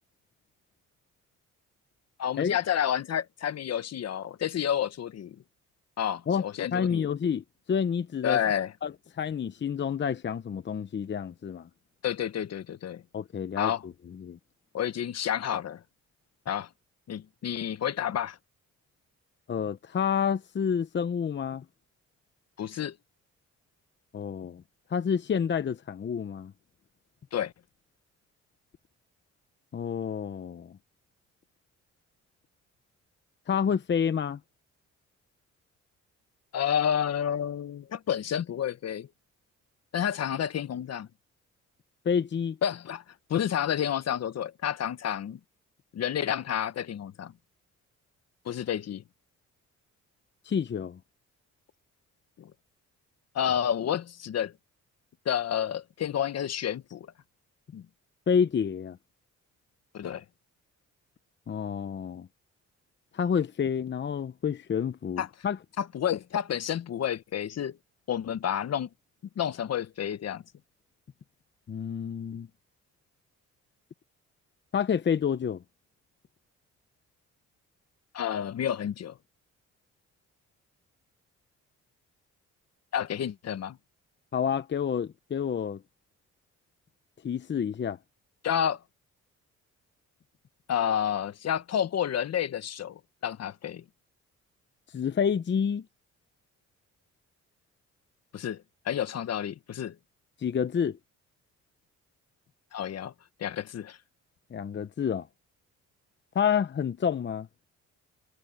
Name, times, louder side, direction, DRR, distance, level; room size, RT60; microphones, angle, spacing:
voice 1, 2.2-5.4 6.0-7.1 8.2-8.7 12.0-13.0 13.6-13.8 14.7-15.8 16.5-16.7 17.1-18.4 22.6-23.0 27.3-27.5 36.5-39.1 39.9-41.1 42.6-43.0 43.3-45.4 45.9-47.3 48.4-49.0 52.4-52.5 53.3-54.5 55.2-57.1 57.7-57.9 59.9-60.2 65.2-65.3 65.8-67.8 68.1-68.9 69.4-70.4 78.1-79.2 82.9-83.8 88.4-88.8 90.7-93.8 98.3-100.0 102.7-103.1 103.4-104.0, left 9 dB, 55° left, 1.3 m, -30 dB
voice 2, 6.7-8.4 8.8-11.7 13.1-13.9 14.2-14.4 19.5-21.6 24.1-24.6 24.9-26.5 29.7-30.8 33.5-34.4 42.0-42.6 50.4-51.0 58.3-59.0 61.5-62.3 63.1-65.6 71.7-72.5 74.7-75.6 84.3-85.8 87.2-88.0 94.9-95.8 100.4-101.0 104.5-105.3 106.3-107.5, left 7 dB, 40° left, 0.9 m, -29 dB
cardioid pair, 90°, 30 cm